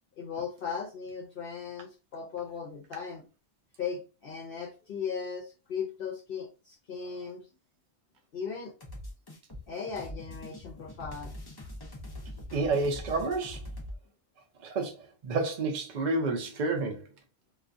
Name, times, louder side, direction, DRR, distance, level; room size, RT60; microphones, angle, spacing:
voice 1, 0.2-3.2 3.8-7.5 8.3-8.7 9.7-11.3 12.0-12.2, left 6 dB, 60° left, 0.7 m, -37 dB
sound 1, 8.8-14.0, left 1 dB, 30° left, 0.5 m, -43 dB
voice 2, 12.5-13.6 14.6-17.1, right 3 dB, 55° right, 0.6 m, -30 dB
2.3 x 2.3 x 2.5 m
omnidirectional pair, 1.1 m